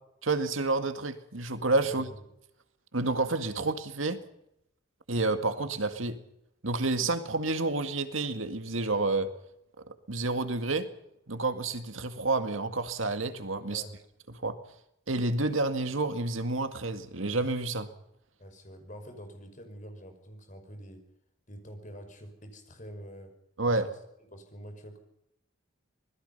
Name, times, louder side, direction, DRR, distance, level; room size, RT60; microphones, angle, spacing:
voice 1, 0.2-2.1 2.9-4.2 5.1-6.2 6.6-9.3 10.1-10.9 11.3-13.8 14.4-14.6 15.1-17.9 23.6-23.9, right 3 dB, 80° right, 8 dB, 2.1 m, -29 dB
voice 2, 1.8-2.2 13.7-14.0 18.4-21.1 21.5-23.3 23.6-24.0 24.3-25.0, equal, 40° left, 6 dB, 5.5 m, -46 dB
26.5 x 20.5 x 5.6 m, 0.80 s
head